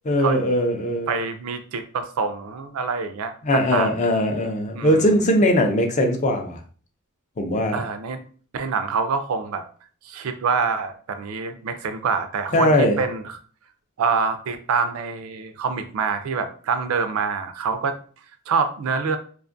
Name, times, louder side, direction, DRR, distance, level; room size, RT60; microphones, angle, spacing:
voice 1, 0.0-1.2 3.4-6.6 7.4-7.8 12.5-13.0, left 1 dB, 35° left, 4 dB, 0.4 m, -20 dB
voice 2, 1.1-3.9 4.7-5.0 7.7-8.2 8.5-9.6 10.0-13.4 14.0-18.0 18.5-19.2, right 5 dB, 75° right, 9 dB, 0.4 m, -26 dB
2.5 x 2.3 x 2.5 m, 0.43 s
head